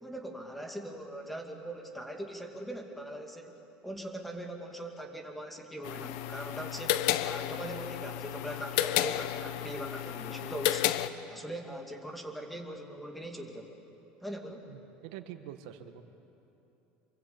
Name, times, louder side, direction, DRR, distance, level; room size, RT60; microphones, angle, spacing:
voice 1, 0.0-10.9 11.3-13.7 14.2-14.6, right 1 dB, ahead, 3 dB, 2.5 m, -41 dB
sound 1, 5.8-11.1, left 13 dB, 70° left, 1.0 m, -32 dB
voice 2, 14.7-16.0, right 11 dB, 85° right, 8 dB, 1.7 m, -45 dB
27.5 x 23.5 x 8.8 m, 2.9 s
cardioid pair, 155°, 4 cm